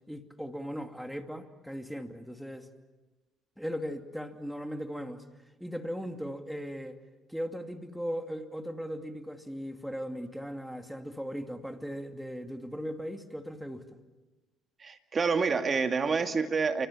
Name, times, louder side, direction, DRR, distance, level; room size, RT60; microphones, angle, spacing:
voice 1, 0.1-2.7 3.6-5.2 5.6-7.0 7.3-14.0, equal, ahead, 6 dB, 2.6 m, -38 dB
voice 2, 14.8-16.9, right 5 dB, 40° right, 7 dB, 2.2 m, -28 dB
28.0 x 25.5 x 7.3 m, 1.2 s
hypercardioid pair, 60°, 0 cm